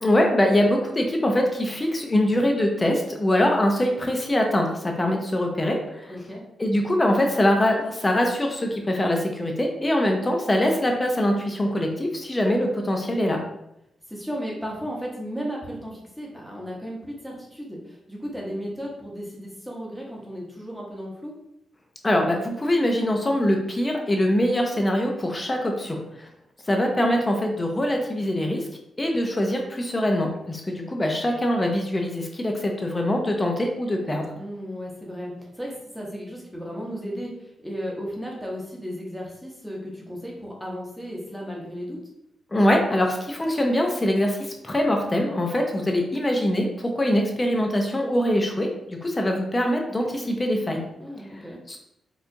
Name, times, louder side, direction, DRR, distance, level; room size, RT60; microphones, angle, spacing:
voice 1, 0.0-6.1 6.6-13.4 22.0-26.3 26.7-28.6 29.0-34.3 42.5-50.8 51.3-51.4 51.7-51.8, left 1 dB, 15° left, 2 dB, 0.4 m, -23 dB
voice 2, 6.1-6.4 14.1-21.3 34.4-42.0 51.0-51.6, equal, ahead, -3 dB, 0.8 m, -35 dB
4.4 x 2.4 x 2.5 m, 0.81 s
wide cardioid pair, 160°, 0 cm